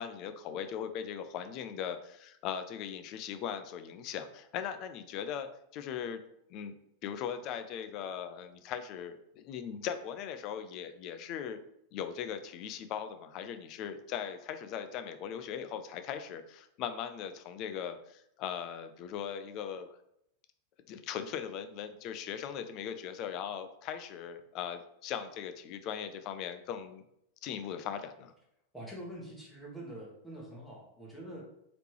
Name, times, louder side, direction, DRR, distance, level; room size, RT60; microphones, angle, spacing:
voice 1, 0.0-6.2 6.5-6.7 7.0-11.6 11.9-19.9 20.9-27.0 27.4-28.3, left 8 dB, 40° left, 9 dB, 0.4 m, -39 dB
voice 2, 28.7-31.4, right 1 dB, ahead, -4 dB, 1.2 m, -45 dB
3.3 x 2.9 x 3.2 m, 0.77 s
figure-of-eight pair, 90°, 0 cm